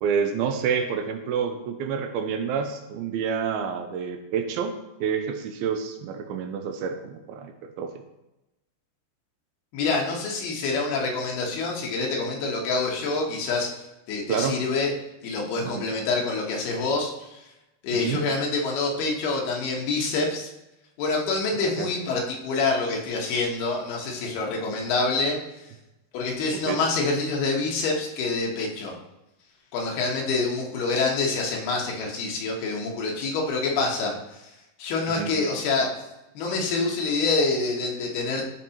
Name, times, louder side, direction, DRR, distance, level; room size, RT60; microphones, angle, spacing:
voice 1, 0.0-4.7 5.0-7.9 14.3-14.6 15.6-15.9 18.0-18.3 21.8-21.9 26.5-26.8 35.1-35.3, right 7 dB, 80° right, 6 dB, 2.3 m, -28 dB
voice 2, 9.7-13.7 14.1-14.9 15.2-17.4 17.8-20.5 21.0-25.4 26.1-28.9 29.7-34.5 34.8-36.0 36.3-38.4, left 3 dB, 70° left, -1 dB, 3.1 m, -26 dB
12.5 x 5.4 x 2.9 m, 0.96 s
omnidirectional pair, 4.8 m